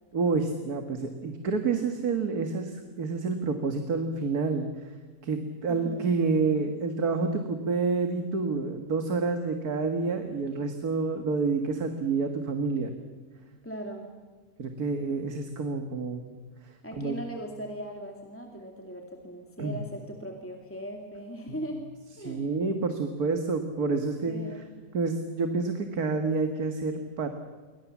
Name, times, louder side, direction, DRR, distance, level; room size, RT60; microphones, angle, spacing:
voice 1, 0.1-4.9 5.2-12.9 14.6-16.3 16.6-17.2 19.6-19.8 22.2-24.6 24.9-27.3, right 4 dB, 60° right, 6 dB, 2.1 m, -28 dB
voice 2, 5.7-6.1 13.6-14.1 16.8-21.9 22.2-22.5 24.3-24.6, equal, 5° left, 2 dB, 2.4 m, -39 dB
28.0 x 23.5 x 7.3 m, 1.4 s
omnidirectional pair, 1.8 m